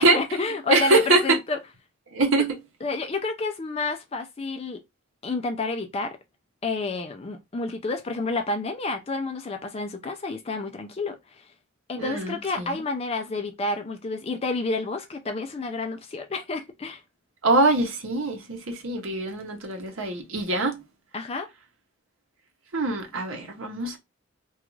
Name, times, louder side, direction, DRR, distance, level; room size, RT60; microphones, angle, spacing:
voice 1, 0.0-1.6 2.8-4.8 5.2-6.2 6.6-11.2 11.9-17.0 21.1-21.5, left 3 dB, 30° left, 0.4 m, -30 dB
voice 2, 0.7-1.4 2.1-2.5 12.0-12.8 17.4-20.8 22.7-24.0, right 2 dB, 75° right, 0.8 m, -23 dB
2.4 x 2.3 x 3.0 m
head